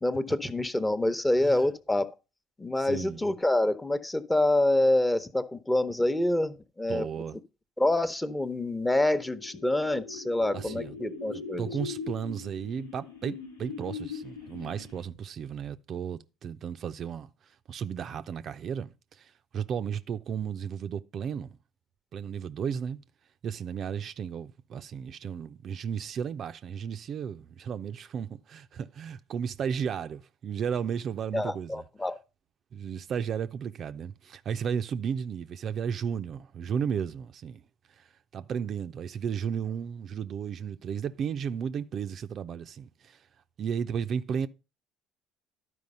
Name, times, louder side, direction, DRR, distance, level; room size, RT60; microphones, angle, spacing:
voice 1, 0.0-2.1 2.6-7.1 7.8-11.7 31.3-32.2, left 1 dB, 15° left, 0.9 m, -26 dB
voice 2, 2.8-3.2 6.9-7.4 10.5-10.9 11.3-17.3 17.7-21.6 22.1-23.0 23.4-31.8 32.7-37.6 38.0-38.1 38.3-43.2 43.6-44.5, right 7 dB, 50° right, 0.5 m, -34 dB
sound 1, 8.7-15.2, left 5 dB, 85° left, 1.2 m, -41 dB
12.0 x 4.8 x 5.4 m
hypercardioid pair, 60°, 0 cm